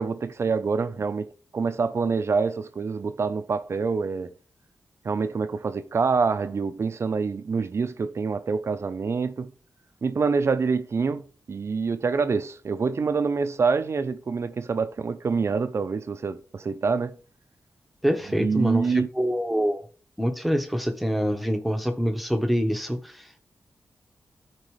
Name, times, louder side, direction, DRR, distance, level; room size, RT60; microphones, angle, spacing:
voice 1, 0.0-4.3 5.0-9.5 10.0-17.2 18.3-19.1, right 5 dB, 55° right, 0.6 m, -26 dB
voice 2, 18.0-18.8 19.2-19.8 20.2-23.0, equal, ahead, 1.3 m, -25 dB
13.0 x 4.6 x 3.2 m
cardioid pair, 65°, 5 cm